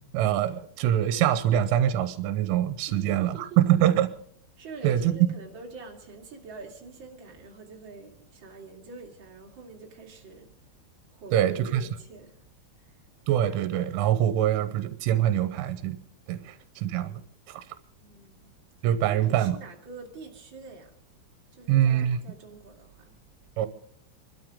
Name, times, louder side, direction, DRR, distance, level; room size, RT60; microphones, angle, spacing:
voice 1, 0.1-4.1 4.8-5.0 11.3-11.8 13.3-16.0 16.3-17.2 17.5-17.6 18.8-19.6 21.7-22.2 23.6-23.7, right 11 dB, 90° right, 3.4 m, -24 dB
voice 2, 2.9-3.8 4.6-10.5 11.1-12.5 12.8-13.3 16.4-16.5 18.0-18.5 19.0-20.9 21.5-23.1, right 3 dB, 35° right, 2.1 m, -45 dB
27.0 x 12.5 x 3.7 m
omnidirectional pair, 5.7 m